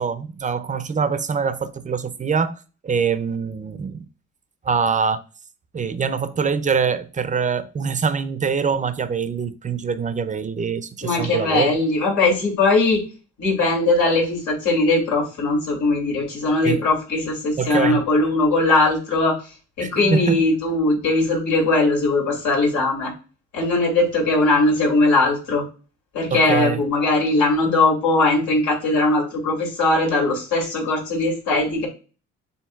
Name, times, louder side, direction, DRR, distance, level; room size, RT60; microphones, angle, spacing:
voice 1, 0.0-4.1 4.6-5.2 5.7-11.8 16.6-16.8 17.6-18.0 19.8-20.4 26.3-26.8, right 6 dB, 25° right, 0.5 m, -24 dB
voice 2, 11.0-13.0 13.4-19.4 19.8-23.1 23.5-25.6 26.1-31.9, left 2 dB, 85° left, 2.6 m, -20 dB
7.5 x 2.7 x 2.3 m
cardioid pair, 90°, 30 cm